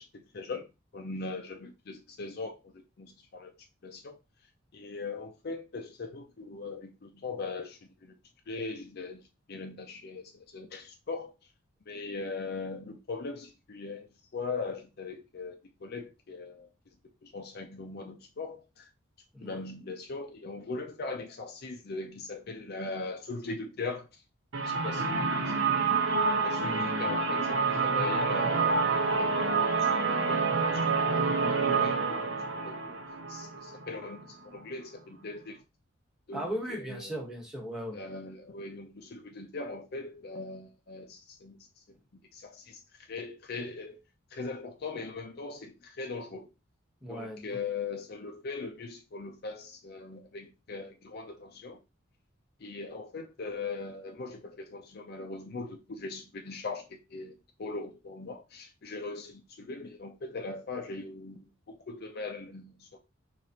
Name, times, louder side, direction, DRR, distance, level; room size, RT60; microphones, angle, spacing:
voice 1, 0.3-0.6 0.9-2.5 3.0-3.5 3.8-4.2 4.7-7.8 8.0-8.1 8.5-9.2 9.5-10.2 10.5-11.3 11.9-14.1 14.3-15.6 15.8-16.7 17.3-18.6 19.4-24.0 24.6-25.7 26.4-29.5 29.8-30.8 31.1-32.3 32.6-33.0 33.3-34.2 34.4-35.6 36.3-36.5 36.9-37.0 37.9-41.6 42.4-42.8 43.1-44.0 44.3-46.5 47.1-51.8 52.6-56.8 57.1-57.3 57.6-61.4 61.9-63.0, left 3 dB, 50° left, 0.5 m, -40 dB
sound 1, 24.5-34.2, right 4 dB, 70° right, 0.9 m, -28 dB
voice 2, 26.6-27.1 36.3-38.0 47.0-47.6, equal, 5° right, 1.2 m, -37 dB
4.9 x 3.0 x 2.8 m
head